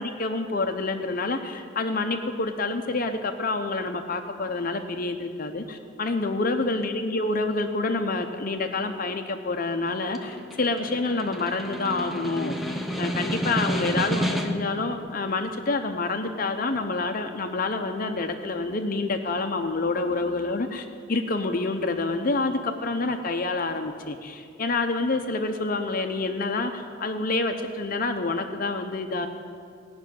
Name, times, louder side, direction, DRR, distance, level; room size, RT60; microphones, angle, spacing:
voice 1, 0.0-29.3, left 3 dB, 45° left, 6 dB, 0.7 m, -28 dB
Snare drum, 9.9-14.8, equal, ahead, 0.9 m, -30 dB
17.5 x 6.3 x 9.2 m, 2.3 s
head